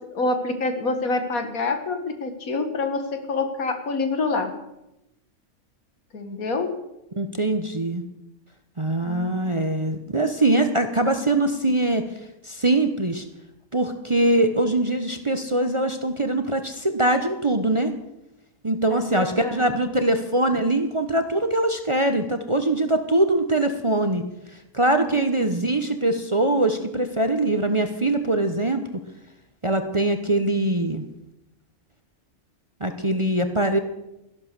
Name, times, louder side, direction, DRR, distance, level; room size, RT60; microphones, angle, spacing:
voice 1, 0.0-4.5 6.1-6.7 18.9-19.7 25.0-25.6, left 3 dB, 75° left, 7 dB, 2.1 m, -27 dB
voice 2, 7.2-8.0 8.8-12.0 12.4-13.2 13.7-17.9 18.6-24.2 24.7-28.8 29.6-31.1 32.8-33.8, right 1 dB, 25° right, 7 dB, 0.8 m, -22 dB
13.0 x 11.5 x 6.7 m, 0.90 s
omnidirectional pair, 1.5 m